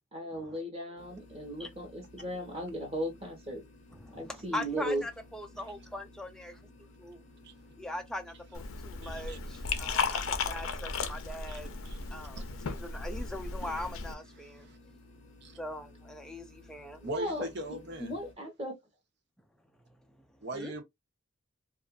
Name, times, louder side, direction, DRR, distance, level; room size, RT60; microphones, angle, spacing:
voice 1, 0.1-3.6 4.1-5.0 17.0-17.5 18.0-18.8, equal, 30° right, 1.1 m, -36 dB
sound 1, 1.0-18.3, left 2 dB, 35° left, 0.7 m, -56 dB
voice 2, 3.9-7.2 7.8-11.7 12.1-14.7 15.6-17.0 20.5-20.7, left 1 dB, 5° left, 0.3 m, -41 dB
Liquid, 8.5-14.1, left 5 dB, 75° left, 0.5 m, -35 dB
voice 3, 9.0-9.4 9.7-9.8 11.5-11.6 11.8-12.0 12.4-12.5 14.4-14.8 15.4-15.6 17.0-18.1 20.4-20.8, right 2 dB, 55° right, 0.7 m, -41 dB
2.5 x 2.4 x 2.3 m
head